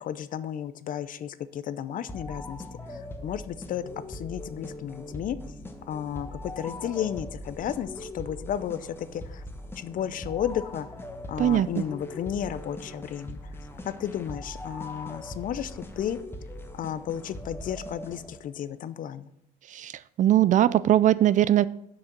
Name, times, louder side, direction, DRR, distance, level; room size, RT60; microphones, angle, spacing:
voice 1, 0.0-2.6 2.9-5.4 5.9-9.4 9.8-10.9 11.3-13.4 13.8-16.2 16.7-19.3, left 10 dB, 55° left, 14 dB, 0.6 m, -33 dB
sound 1, 2.1-18.6, left 1 dB, 15° left, 1.2 m, -41 dB
voice 2, 11.4-11.9 19.7-21.7, right 12 dB, 50° right, 17 dB, 0.4 m, -21 dB
6.3 x 6.0 x 7.3 m, 0.75 s
cardioid pair, 110°, 17 cm